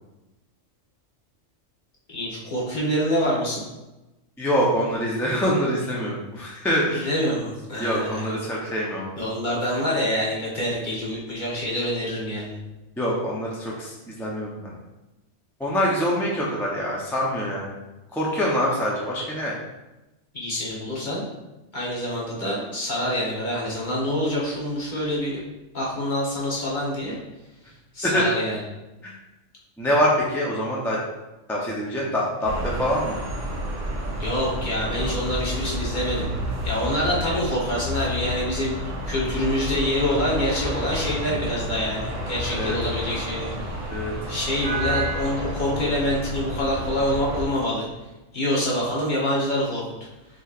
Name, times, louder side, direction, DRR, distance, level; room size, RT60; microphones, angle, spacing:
voice 1, 2.1-3.6 6.9-8.4 9.2-12.6 20.3-21.3 21.7-25.4 25.7-27.2 27.9-28.6 34.2-36.3 36.6-43.8 44.3-47.9 48.3-49.8, equal, 40° left, -5 dB, 1.2 m, -26 dB
voice 2, 4.4-7.1 7.8-9.1 13.0-14.7 15.6-17.8 18.1-19.5 28.0-28.2 29.0-29.1 29.8-31.0 31.5-33.2 42.5-42.7 43.9-44.1, equal, 5° left, -5 dB, 0.5 m, -25 dB
sound 1, 32.4-47.4, equal, 75° right, 1.4 m, -30 dB
6.2 x 2.9 x 2.5 m, 1.0 s
omnidirectional pair, 1.3 m